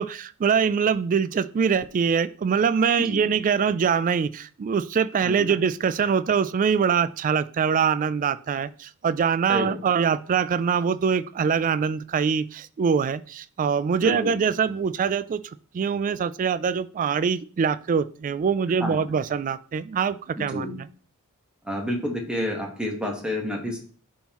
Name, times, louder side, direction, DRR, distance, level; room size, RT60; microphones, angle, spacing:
voice 1, 0.0-20.9, right 6 dB, 40° right, 15 dB, 0.3 m, -24 dB
voice 2, 14.0-14.3 18.8-19.0 20.4-20.8 21.6-23.8, left 1 dB, 5° right, 0 dB, 1.2 m, -29 dB
11.0 x 3.7 x 3.0 m, 0.43 s
head